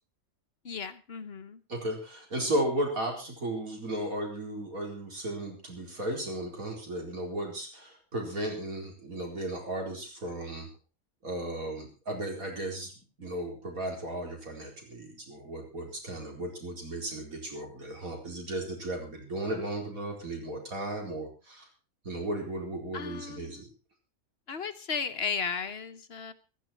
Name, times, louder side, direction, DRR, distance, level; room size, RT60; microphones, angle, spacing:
voice 1, 0.6-1.6 22.9-23.6 24.5-26.3, left 5 dB, 50° left, 10 dB, 1.1 m, -35 dB
voice 2, 1.7-10.7 11.2-12.9 13.2-21.7 22.0-23.7, right 1 dB, 75° right, 1 dB, 4.8 m, -35 dB
15.5 x 13.5 x 4.4 m, 0.34 s
omnidirectional pair, 1.5 m